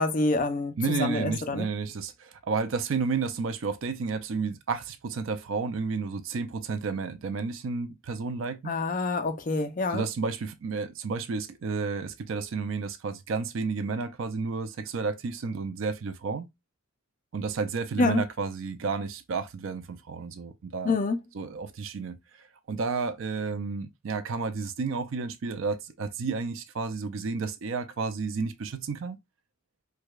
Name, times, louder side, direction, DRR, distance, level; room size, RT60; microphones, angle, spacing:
voice 1, 0.0-1.7 8.6-10.0 18.0-18.2 20.8-21.2, left 3 dB, 40° left, 0.5 m, -26 dB
voice 2, 0.8-8.7 9.9-16.5 17.3-20.9 21.3-29.2, right 4 dB, 70° right, 0.5 m, -31 dB
4.7 x 2.2 x 2.3 m
head